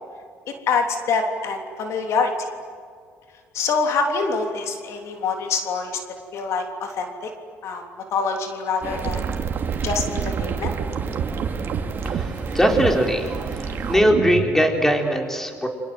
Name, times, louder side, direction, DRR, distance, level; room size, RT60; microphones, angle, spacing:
voice 1, 0.5-2.5 3.5-6.0 6.3-7.3 7.6-9.3 9.8-10.8, left 4 dB, 65° left, 4 dB, 3.4 m, -25 dB
sound 1, 8.8-14.0, right 5 dB, 40° right, 2.8 m, -31 dB
sound 2, 9.0-14.6, right 8 dB, 55° right, 2.7 m, -28 dB
voice 2, 12.0-15.7, equal, 5° left, 2 dB, 4.3 m, -21 dB
29.5 x 25.5 x 7.9 m, 2.1 s
cardioid pair, 100°, 5 cm